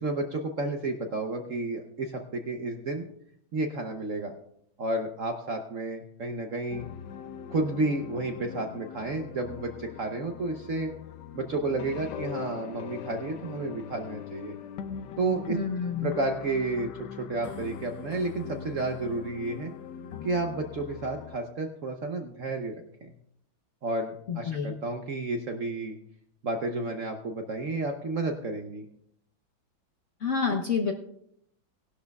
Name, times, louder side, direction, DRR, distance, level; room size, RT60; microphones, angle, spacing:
voice 1, 0.0-3.0 3.5-4.3 4.8-6.8 7.5-10.9 11.3-14.5 15.2-15.6 16.0-19.7 20.2-23.1 23.8-26.0 26.4-28.8, right 2 dB, 55° right, 4 dB, 0.9 m, -31 dB
sound 1, 6.7-21.4, left 8 dB, 70° left, 1.2 m, -41 dB
voice 2, 15.5-16.1 24.3-24.8 30.2-30.9, left 5 dB, 50° left, 1 dB, 0.9 m, -28 dB
18.0 x 11.5 x 2.3 m, 0.71 s
omnidirectional pair, 2.2 m